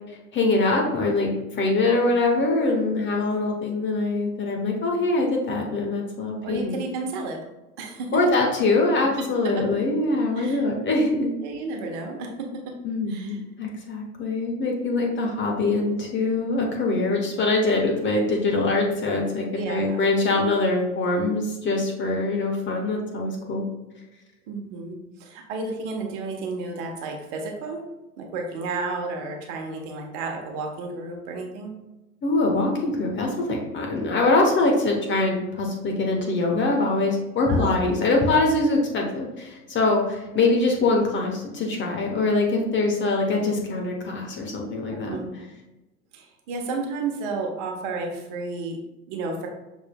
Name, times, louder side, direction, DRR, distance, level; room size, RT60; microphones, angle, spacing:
voice 1, 0.1-6.8 8.1-11.3 12.8-23.6 32.2-45.2, left 2 dB, 25° left, 1 dB, 0.9 m, -23 dB
voice 2, 6.4-7.4 7.8-8.1 9.5-9.6 10.4-10.6 11.4-12.5 13.1-13.4 19.5-20.0 24.5-24.9 25.2-27.8 28.2-31.7 37.5-37.8 45.1-45.3 46.1-48.8 49.1-49.5, right 3 dB, 50° right, 2 dB, 1.1 m, -32 dB
6.2 x 3.6 x 2.2 m, 1.0 s
hypercardioid pair, 90°, 46 cm